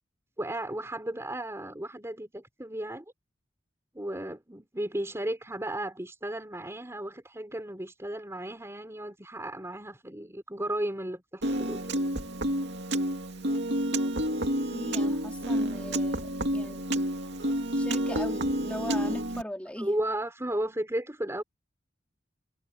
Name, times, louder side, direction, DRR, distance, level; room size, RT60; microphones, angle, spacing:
voice 1, 0.4-3.0 3.9-12.0 19.8-21.4, right 1 dB, 15° right, 3.7 m, -34 dB
Piano, 11.4-19.4, right 1 dB, 65° right, 2.5 m, -29 dB
voice 2, 14.7-17.1 17.7-19.9, left 1 dB, 5° left, 3.5 m, -39 dB
head